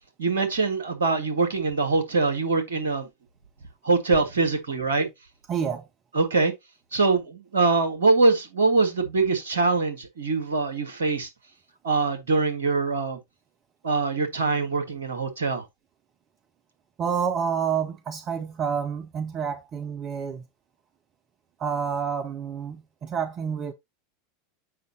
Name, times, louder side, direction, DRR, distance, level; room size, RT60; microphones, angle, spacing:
voice 1, 0.2-3.1 3.8-5.1 6.1-6.5 6.9-11.3 11.8-13.2 13.8-15.7, right 3 dB, 70° right, 1.6 m, -23 dB
voice 2, 5.5-5.9 17.0-20.4 21.6-23.7, right 7 dB, 35° right, 0.6 m, -28 dB
7.7 x 5.2 x 2.8 m
figure-of-eight pair, 80°, 0 cm